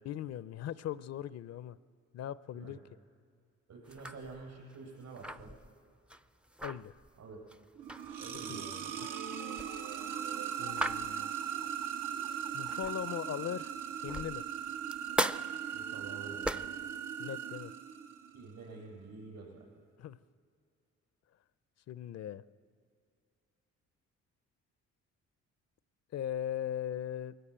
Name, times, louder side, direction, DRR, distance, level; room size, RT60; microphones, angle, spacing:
voice 1, 0.0-1.8 2.1-2.8 6.6-7.0 8.5-8.6 10.6-11.3 12.5-13.7 14.0-14.4 17.2-17.7 20.0-20.2 21.9-22.4 26.1-27.3, left 10 dB, 55° left, 17 dB, 0.5 m, -39 dB
voice 2, 3.7-5.6 7.2-7.4 8.2-8.9 15.7-16.7 18.3-19.7, right 4 dB, 65° right, -1 dB, 7.9 m, -48 dB
sound 1, 3.8-13.2 13.6-16.9, equal, 5° right, 0.4 m, -40 dB
sound 2, 7.8-18.5, right 9 dB, 85° right, 1.3 m, -39 dB
21.5 x 17.0 x 8.8 m, 2.3 s
cardioid pair, 90°, 30 cm